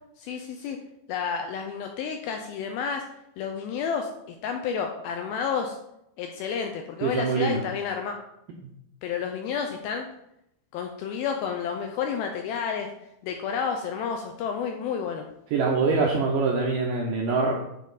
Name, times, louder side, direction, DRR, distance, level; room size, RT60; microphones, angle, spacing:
voice 1, 0.2-0.8 1.1-3.1 3.4-5.8 6.2-8.2 9.0-10.1 10.7-12.9 13.2-15.3, left 6 dB, 85° left, 4 dB, 2.2 m, -30 dB
voice 2, 7.0-7.6 15.5-17.5, right 4 dB, 80° right, -1 dB, 1.9 m, -24 dB
9.1 x 3.7 x 4.0 m, 0.81 s
omnidirectional pair, 4.7 m